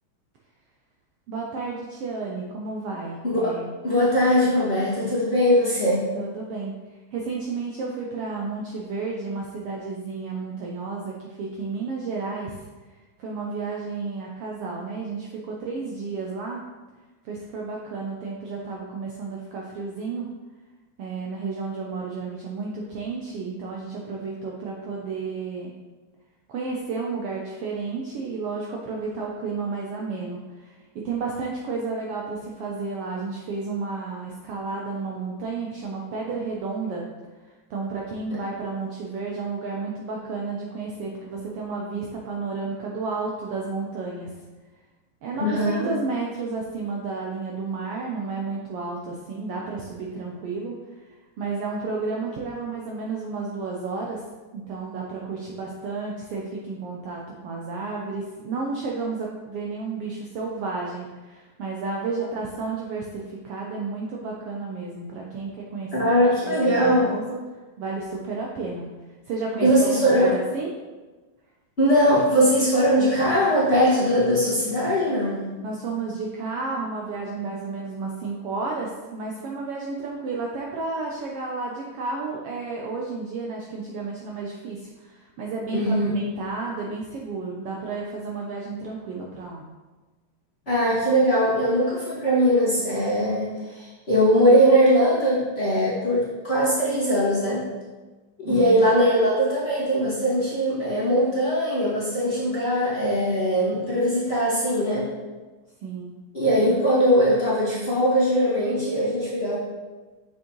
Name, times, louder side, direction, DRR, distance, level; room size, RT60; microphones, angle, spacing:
voice 1, 1.3-3.7 6.1-6.7 7.1-12.6 13.2-16.6 17.2-20.3 21.0-25.7 26.5-37.1 37.4-44.3 45.2-54.2 54.5-66.1 66.4-67.4 67.8-68.9 69.3-70.7 75.6-89.6 98.4-98.9 105.8-106.1, right 4 dB, 70° right, -2 dB, 1.4 m, -32 dB
voice 2, 3.8-6.1 45.3-45.9 65.9-67.1 69.6-70.3 71.8-75.5 85.7-86.1 90.7-97.6 98.4-105.1 106.3-109.6, equal, 25° left, -10 dB, 1.5 m, -21 dB
7.2 x 6.4 x 3.0 m, 1.3 s
omnidirectional pair, 3.3 m